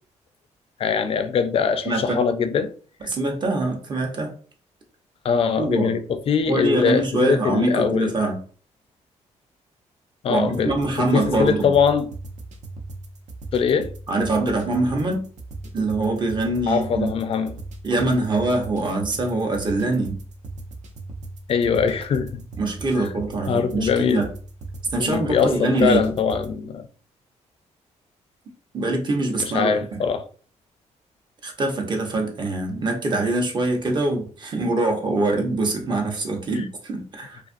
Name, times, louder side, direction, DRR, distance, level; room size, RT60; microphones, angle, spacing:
voice 1, 0.8-2.7 5.2-8.1 10.2-12.1 13.5-13.9 16.7-17.6 21.5-22.4 23.0-23.1 23.5-24.3 25.0-26.9 29.4-30.3, left 6 dB, 50° left, 0.3 m, -22 dB
voice 2, 1.9-2.2 3.1-4.3 5.6-5.9 6.5-8.4 10.3-11.7 14.1-15.3 15.7-17.1 17.8-20.2 22.6-24.3 24.9-26.0 28.7-30.0 31.4-37.4, right 2 dB, 40° right, 0.7 m, -24 dB
sound 1, 10.5-26.5, right 2 dB, 75° right, 0.5 m, -38 dB
2.5 x 2.4 x 2.5 m
cardioid pair, 105°, 12 cm